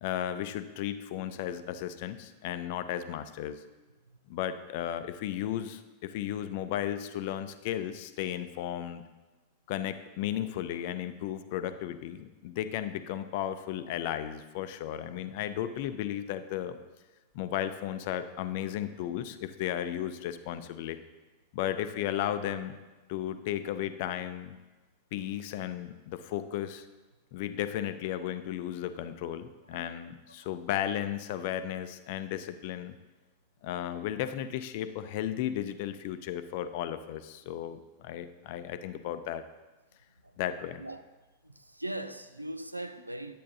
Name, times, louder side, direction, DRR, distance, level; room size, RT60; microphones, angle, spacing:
voice 1, 0.0-3.6 4.3-9.0 9.7-16.8 17.3-21.0 21.5-22.8 23.1-24.6 25.1-26.9 27.3-33.0 33.6-39.4 40.4-40.8, left 11 dB, 50° left, 0.5 m, -34 dB
voice 2, 41.4-43.4, right 1 dB, 85° right, 0.4 m, -39 dB
10.5 x 8.4 x 2.7 m
figure-of-eight pair, 90°, 0 cm